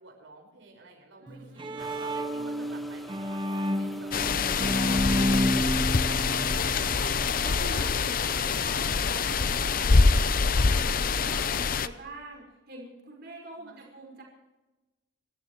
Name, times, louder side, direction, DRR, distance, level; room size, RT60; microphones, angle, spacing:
voice 1, 0.0-4.1 4.4-6.5 10.6-11.3 13.6-13.8, right 3 dB, 80° right, 1 dB, 5.2 m, -50 dB
voice 2, 1.2-1.9 2.3-2.7 6.1-6.6 6.9-10.8 11.2-14.2, right 2 dB, 55° right, -1 dB, 5.6 m, -45 dB
Bowed string instrument, 1.3-7.4, equal, 25° right, 1.1 m, -30 dB
sound 1, 1.8-7.6, equal, ahead, 1.5 m, -47 dB
sound 2, 4.1-11.9, left 4 dB, 45° left, 0.7 m, -25 dB
29.5 x 14.0 x 3.2 m, 1.1 s
head